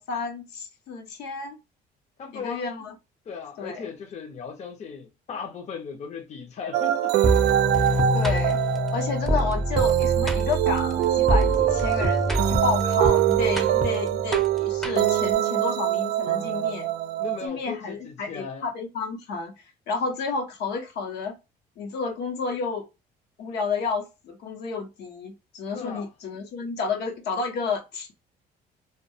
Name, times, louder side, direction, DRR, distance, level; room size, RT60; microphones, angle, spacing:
voice 1, 0.0-1.6 2.3-3.0 3.6-3.9 8.1-8.6 8.9-16.9 17.4-19.5 19.9-21.4 21.8-22.9 23.4-28.1, left 4 dB, 75° left, 0.8 m, -31 dB
voice 2, 2.2-2.6 3.3-7.2 17.2-18.7 25.7-26.1, left 5 dB, 40° left, 0.6 m, -37 dB
sound 1, 6.7-17.5, right 13 dB, 80° right, 0.4 m, -24 dB
sound 2, 7.2-15.3, equal, ahead, 0.6 m, -26 dB
2.2 x 2.2 x 2.6 m
cardioid pair, 110°, 17 cm